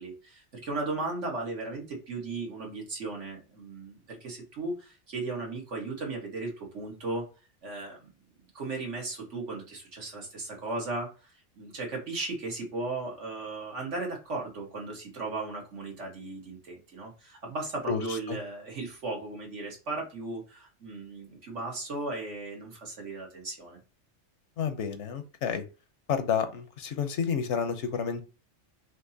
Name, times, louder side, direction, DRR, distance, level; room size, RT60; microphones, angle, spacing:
voice 1, 0.0-7.3 7.6-8.0 8.5-23.8, right 3 dB, 75° right, -1 dB, 1.9 m, -36 dB
voice 2, 24.6-25.6 26.1-28.2, left 7 dB, 75° left, 8 dB, 1.1 m, -30 dB
5.8 x 2.9 x 2.7 m, 0.32 s
omnidirectional pair, 1.2 m